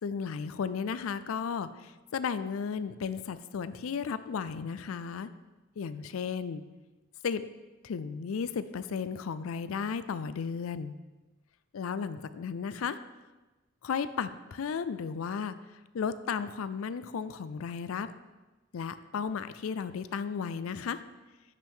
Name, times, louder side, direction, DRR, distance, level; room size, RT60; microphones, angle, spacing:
voice 1, 0.0-5.3 5.8-6.6 7.2-7.5 7.8-11.0 11.7-13.0 13.8-15.6 15.9-18.1 18.7-21.0, left 6 dB, 90° left, 14 dB, 0.4 m, -34 dB
10.0 x 6.0 x 3.6 m, 1.2 s
head